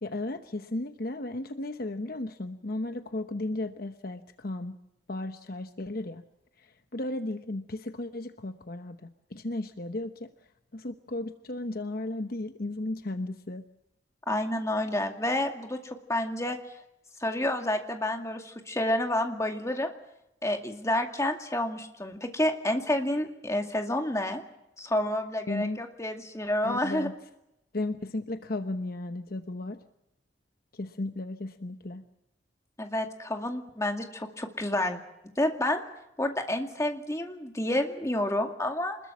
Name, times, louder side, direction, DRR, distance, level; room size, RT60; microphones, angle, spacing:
voice 1, 0.0-4.8 5.1-6.2 6.6-10.3 10.7-13.6 25.5-25.8 26.6-27.1 27.7-29.8 30.7-32.0, left 2 dB, 50° left, 8 dB, 1.0 m, -35 dB
voice 2, 14.3-16.6 17.2-19.9 20.4-24.4 24.8-27.1 32.8-35.0 35.4-35.8 36.2-39.0, left 1 dB, 15° left, 4 dB, 2.3 m, -29 dB
26.0 x 21.0 x 7.4 m, 0.85 s
head